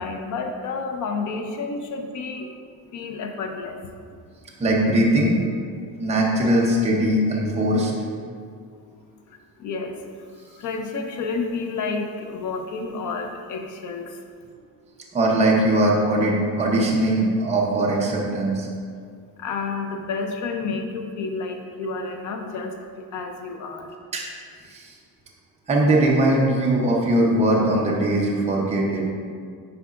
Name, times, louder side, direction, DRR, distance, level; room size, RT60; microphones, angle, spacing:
voice 1, 0.0-2.6 2.9-3.8 9.6-10.0 10.6-14.1 19.4-23.9, left 4 dB, 45° left, 5 dB, 0.6 m, -30 dB
voice 2, 4.6-5.4 6.0-7.9 15.1-18.7 24.1-24.3 24.7-24.9 25.7-29.0, right 1 dB, 15° right, -3 dB, 0.7 m, -20 dB
9.5 x 4.7 x 2.4 m, 2.2 s
cardioid pair, 180°, 41 cm